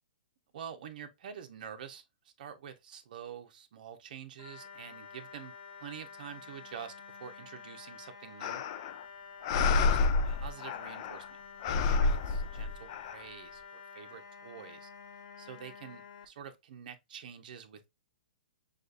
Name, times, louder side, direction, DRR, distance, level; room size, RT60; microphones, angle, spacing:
voice 1, 0.5-5.5 5.8-6.9 7.2-8.6 9.7-10.0 10.2-11.4 11.6-14.9 15.4-17.9, right 8 dB, 55° right, 0.9 m, -47 dB
sound 1, 4.4-16.3, left 6 dB, 55° left, 1.0 m, -50 dB
sound 2, 8.4-9.0 9.4-11.3 11.6-13.1, left 4 dB, 30° left, 0.4 m, -29 dB
6.3 x 2.5 x 2.5 m
hypercardioid pair, 165°, 5 cm